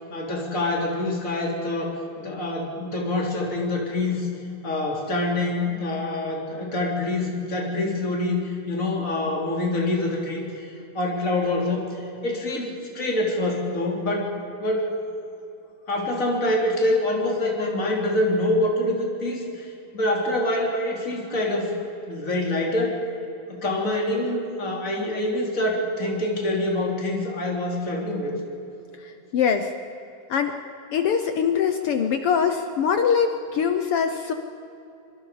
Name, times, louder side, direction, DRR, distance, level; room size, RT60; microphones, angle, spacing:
voice 1, 0.1-4.3 4.6-10.7 10.9-14.3 14.6-14.9 15.9-19.7 19.9-21.8 22.1-23.0 23.5-28.3, left 1 dB, 25° left, -1 dB, 3.7 m, -25 dB
voice 2, 29.0-29.7 30.3-30.6 30.9-34.3, left 7 dB, 65° left, 7 dB, 1.5 m, -23 dB
25.0 x 24.5 x 5.1 m, 2.9 s
omnidirectional pair, 3.4 m